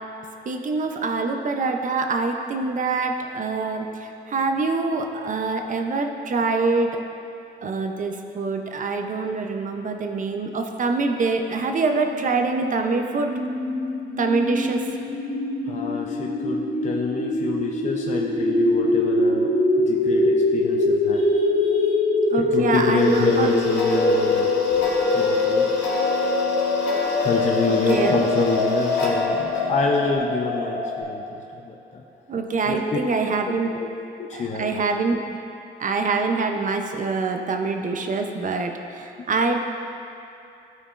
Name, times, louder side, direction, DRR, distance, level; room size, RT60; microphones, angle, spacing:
voice 1, 0.5-7.0 7.6-13.3 14.2-15.0 22.3-23.5 27.7-28.2 32.3-33.7 34.3-35.4 35.8-39.6, right 3 dB, 40° right, 4 dB, 0.6 m, -25 dB
sound 1, 12.1-31.0, left 2 dB, 85° left, 1.5 m, -23 dB
voice 2, 15.7-19.5 19.9-22.0 22.4-24.5 25.1-25.6 27.2-31.2 31.7-31.8 32.7-33.0 34.2-34.7, left 4 dB, 35° left, 0 dB, 0.5 m, -26 dB
Tick-tock, 22.9-30.2, left 4 dB, 65° left, 1.4 m, -30 dB
13.0 x 4.4 x 2.5 m, 2.7 s
cardioid pair, 90°, 20 cm